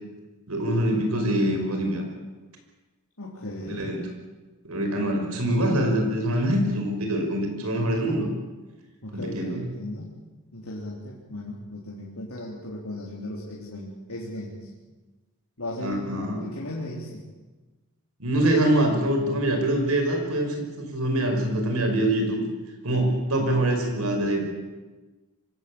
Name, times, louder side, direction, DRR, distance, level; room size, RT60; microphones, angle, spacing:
voice 1, 0.5-2.0 3.6-4.2 4.6-8.3 9.1-9.7 15.8-16.5 18.2-22.4 22.8-24.4, right 1 dB, 75° right, 3 dB, 5.5 m, -24 dB
voice 2, 3.2-3.8 9.0-10.1 10.5-14.6 15.6-17.2, left 1 dB, 70° left, -4 dB, 3.8 m, -36 dB
25.0 x 17.0 x 8.7 m, 1.2 s
head